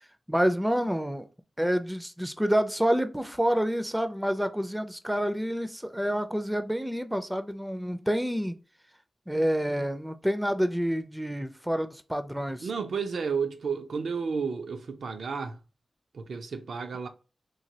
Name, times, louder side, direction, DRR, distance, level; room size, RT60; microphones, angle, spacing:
voice 1, 0.3-1.2 1.6-8.6 9.3-12.7, equal, 5° right, 0.3 m, -28 dB
voice 2, 12.6-15.6 16.1-17.1, right 5 dB, 85° right, 0.4 m, -32 dB
3.0 x 2.2 x 2.7 m
wide cardioid pair, 85°, 0 cm